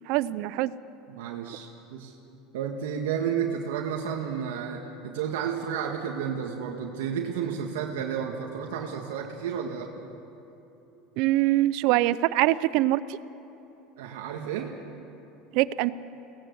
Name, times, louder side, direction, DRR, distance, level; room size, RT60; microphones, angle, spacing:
voice 1, 0.1-0.7 11.2-13.2 15.5-15.9, right 16 dB, 65° right, 17 dB, 0.7 m, -23 dB
voice 2, 1.1-2.1 2.5-9.9 14.0-14.7, right 7 dB, 90° right, 1 dB, 1.8 m, -31 dB
23.0 x 17.5 x 8.0 m, 3.0 s
supercardioid pair, 120°, 0 cm